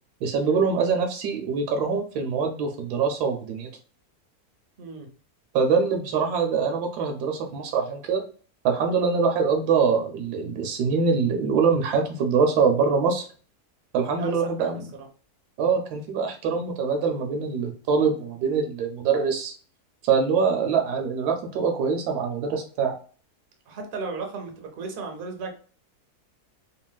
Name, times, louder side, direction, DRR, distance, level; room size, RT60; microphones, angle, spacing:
voice 1, 0.2-3.7 5.5-8.3 8.6-13.3 13.9-14.9 15.6-19.5 20.0-22.9, right 5 dB, 85° right, 3 dB, 1.1 m, -24 dB
voice 2, 23.7-25.5, right 4 dB, 55° right, 3 dB, 0.6 m, -35 dB
3.0 x 2.7 x 2.2 m, 0.41 s
omnidirectional pair, 1.7 m